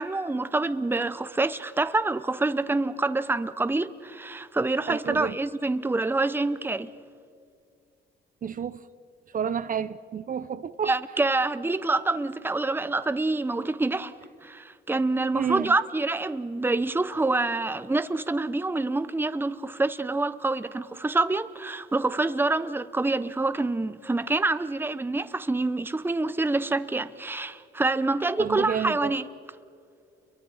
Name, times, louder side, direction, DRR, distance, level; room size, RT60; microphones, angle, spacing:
voice 1, 0.0-6.9 10.9-14.1 14.4-29.2, right 2 dB, 10° right, 0.8 m, -26 dB
voice 2, 4.9-5.4 8.4-8.8 9.3-10.9 15.3-15.7 28.4-29.1, right 7 dB, 45° right, 0.7 m, -30 dB
29.5 x 23.0 x 5.7 m
cardioid pair, 90°, 20 cm